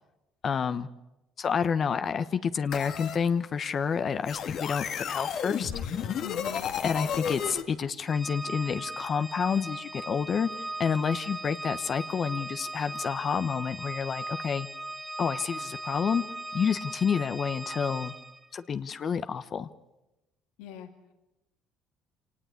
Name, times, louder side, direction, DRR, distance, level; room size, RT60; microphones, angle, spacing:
voice 1, 0.4-0.9 1.4-5.7 6.8-10.5 10.8-14.7 15.2-16.2 16.5-18.1 18.5-19.7, left 6 dB, 45° left, 11 dB, 1.0 m, -29 dB
sound 1, 2.7-3.2 4.3-7.6, left 8 dB, 60° left, 1.8 m, -32 dB
voice 2, 5.5-6.7 20.6-20.9, left 10 dB, 80° left, 5 dB, 2.1 m, -43 dB
Organ, 8.1-18.5, right 2 dB, 5° right, 1.3 m, -38 dB
26.0 x 18.5 x 8.4 m, 0.99 s
supercardioid pair, 80°, 0 cm